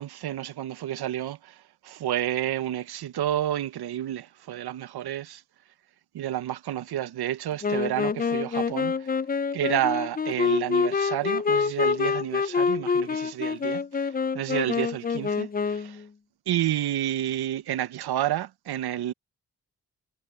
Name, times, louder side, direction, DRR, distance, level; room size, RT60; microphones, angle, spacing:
voice 1, 0.0-5.4 6.1-9.1 9.5-16.0 16.5-19.1, right 12 dB, 90° right, 0.7 m, -30 dB
Wind instrument woodwind instrument, 7.6-16.0, left 5 dB, 25° left, 0.4 m, -26 dB
cardioid pair, 50°, 37 cm